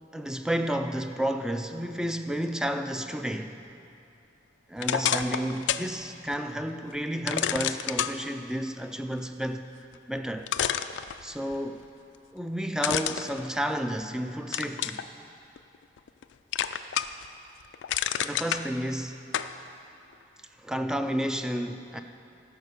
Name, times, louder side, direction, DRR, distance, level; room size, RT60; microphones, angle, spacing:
voice 1, 0.1-3.6 4.7-9.7 10.0-10.5 11.2-11.9 12.3-15.1 18.2-19.2 20.6-22.0, equal, 5° right, 7 dB, 0.3 m, -31 dB
sound 1, 4.8-5.9 6.3-6.4 7.3-8.1 9.9-10.0 10.5-11.6 12.8-14.1 14.5-15.0 15.6-16.2 16.5-17.3 17.6-18.6 19.3-19.5, left 10 dB, 80° left, 0.4 m, -29 dB
13.5 x 5.6 x 6.7 m, 2.7 s
head